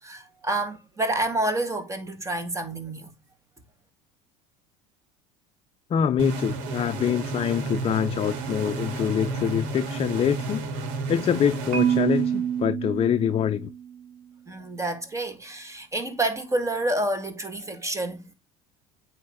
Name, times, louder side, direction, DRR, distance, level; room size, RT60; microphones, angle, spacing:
voice 1, 0.0-3.1 14.5-18.3, right 1 dB, 15° right, 2.0 m, -28 dB
voice 2, 5.9-10.7 11.1-13.7, left 9 dB, 35° left, 0.5 m, -25 dB
sound 1, 6.2-12.7, right 3 dB, 70° right, 2.0 m, -32 dB
Marimba xylophone, 11.7-13.9, right 8 dB, 50° right, 2.2 m, -26 dB
8.8 x 3.2 x 4.9 m
supercardioid pair, 90°, 18 cm